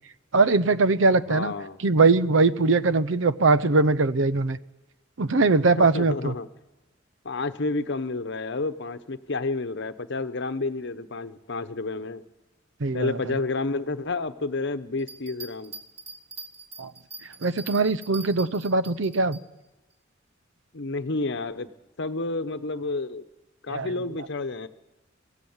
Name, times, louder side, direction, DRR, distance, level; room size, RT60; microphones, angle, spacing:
voice 1, 0.3-1.5 1.8-4.6 5.2-6.3 12.8-13.2 16.8-16.9 17.4-19.4 23.7-23.9, right 3 dB, 75° right, 15 dB, 0.7 m, -21 dB
voice 2, 1.3-1.8 5.8-6.5 7.2-12.2 12.9-15.7 20.7-21.7 22.0-23.2 23.6-24.7, left 3 dB, 65° left, 11 dB, 1.0 m, -30 dB
sound 1, 15.0-19.4, right 3 dB, 35° right, 2.5 m, -42 dB
24.0 x 16.0 x 7.3 m, 1.1 s
head